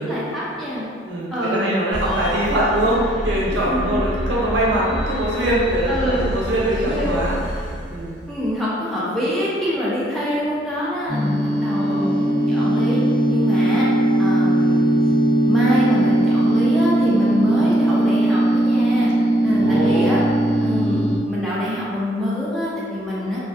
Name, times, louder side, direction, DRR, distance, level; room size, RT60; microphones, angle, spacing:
voice 1, 0.0-0.9 1.3-1.8 3.5-4.0 5.9-6.3 6.7-7.2 8.3-12.1 12.5-13.0 13.3-13.9 14.2-14.8 15.5-19.1 19.4-20.2 20.6-23.4, equal, ahead, -9 dB, 0.3 m, -25 dB
voice 2, 1.0-7.3 7.9-8.2 11.7-12.3 17.5-17.8 19.6-20.1, right 1 dB, 70° right, -5 dB, 0.5 m, -23 dB
sound 1, 1.9-8.5, equal, 20° right, 0.8 m, -28 dB
sound 2, 11.1-21.2, right 1 dB, 60° left, 1.2 m, -19 dB
2.3 x 2.3 x 2.4 m, 2.2 s
head